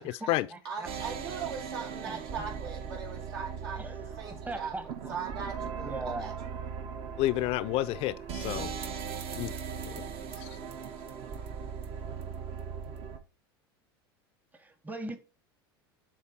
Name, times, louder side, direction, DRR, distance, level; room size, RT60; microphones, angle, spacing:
voice 1, 0.0-0.9 2.1-2.2 3.8-3.9 4.4-5.1 5.8-6.3 14.5-15.2, right 2 dB, 15° right, 0.9 m, -39 dB
voice 2, 0.6-6.6, right 6 dB, 75° right, 2.5 m, -40 dB
sound 1, 0.9-13.2, right 6 dB, 50° right, 1.0 m, -39 dB
voice 3, 7.2-8.7 9.3-9.5 9.9-10.0 10.4-10.5, left 16 dB, 50° left, 0.4 m, -30 dB
7.4 x 3.3 x 4.3 m
hypercardioid pair, 90°, 13 cm